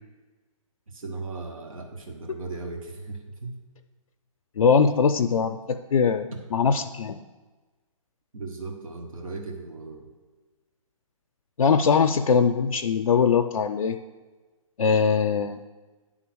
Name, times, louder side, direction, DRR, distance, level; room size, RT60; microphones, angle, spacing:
voice 1, 0.9-3.6 8.3-10.1, right 3 dB, 75° right, 2 dB, 1.4 m, -37 dB
voice 2, 4.6-7.2 11.6-14.0 14.8-15.6, left 6 dB, 80° left, 5 dB, 0.5 m, -21 dB
10.5 x 3.8 x 6.1 m, 1.3 s
hypercardioid pair, 145°, 18 cm